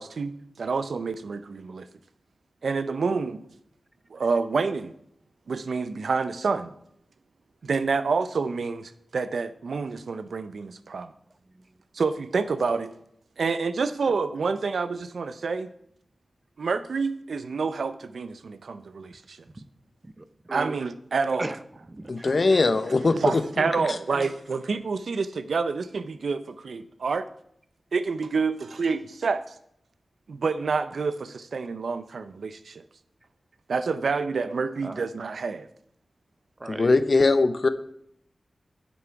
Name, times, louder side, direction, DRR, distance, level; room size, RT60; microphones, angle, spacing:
voice 1, 0.0-1.9 2.6-3.4 4.1-4.9 5.5-6.7 7.6-11.1 11.9-12.9 13.4-15.7 16.6-19.4 20.5-21.5 23.2-27.3 27.9-29.5 30.3-32.8 33.7-35.7, right 4 dB, 85° right, 12 dB, 0.5 m, -28 dB
voice 2, 20.0-20.7 21.4-22.4 34.8-35.0 36.6-36.9, right 2 dB, 30° right, 12 dB, 0.7 m, -37 dB
voice 3, 22.1-23.9 36.7-37.7, left 3 dB, 55° left, 11 dB, 0.7 m, -21 dB
11.0 x 6.0 x 4.6 m, 0.73 s
wide cardioid pair, 70°, 0 cm